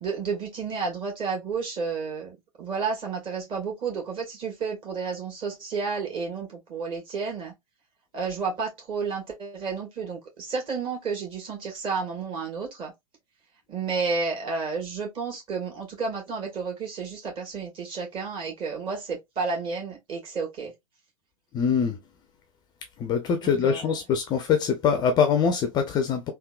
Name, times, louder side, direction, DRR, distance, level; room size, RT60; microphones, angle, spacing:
voice 1, 0.0-7.5 8.1-12.9 13.7-20.7 23.4-23.9, right 5 dB, 30° right, 1.6 m, -31 dB
voice 2, 21.5-22.0 23.0-26.2, left 6 dB, 25° left, 0.5 m, -23 dB
3.6 x 2.3 x 2.3 m
figure-of-eight pair, 100°, 18 cm